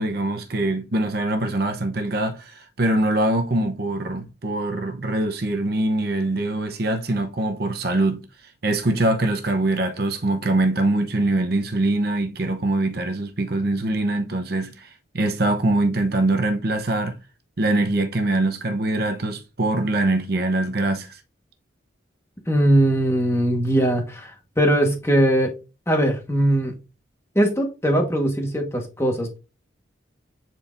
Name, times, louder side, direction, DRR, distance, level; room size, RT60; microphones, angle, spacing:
voice 1, 0.0-8.2 8.6-17.2 17.6-21.2, right 2 dB, 50° right, 0.8 m, -23 dB
voice 2, 22.5-25.5 25.9-26.7 27.3-29.4, right 1 dB, 15° left, 1.4 m, -20 dB
10.5 x 4.4 x 2.6 m
head